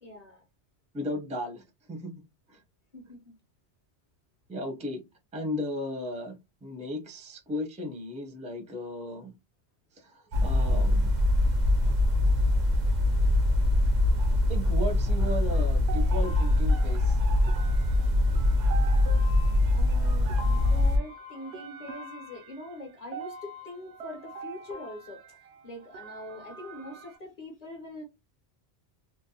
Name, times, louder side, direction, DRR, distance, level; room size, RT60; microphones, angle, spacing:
voice 1, 0.0-0.5 2.9-3.3 19.7-28.0, left 1 dB, 40° left, 0.8 m, -43 dB
voice 2, 0.9-2.1 2.5-2.6 4.5-5.0 5.3-9.3 10.0-11.1 11.8-11.9 14.5-17.2, left 1 dB, 10° right, 0.5 m, -35 dB
sound 1, 10.3-21.0, left 1 dB, 50° right, 0.6 m, -23 dB
sound 2, 15.9-27.2, right 3 dB, 80° right, 0.8 m, -44 dB
2.6 x 2.1 x 2.8 m
omnidirectional pair, 1.1 m